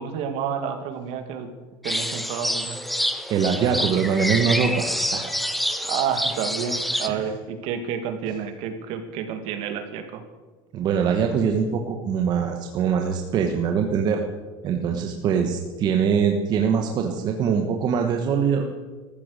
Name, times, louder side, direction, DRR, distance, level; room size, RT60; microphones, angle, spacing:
voice 1, 0.0-1.5 1.8-2.8 5.9-10.2, right 7 dB, 55° right, 7 dB, 2.1 m, -29 dB
sound 1, 1.8-7.1, equal, ahead, 0.7 m, -27 dB
voice 2, 3.3-5.3 7.1-7.3 10.7-14.2 14.6-18.7, right 6 dB, 35° right, 4 dB, 1.3 m, -23 dB
14.5 x 14.0 x 6.5 m, 1.3 s
cardioid pair, 160°, 12 cm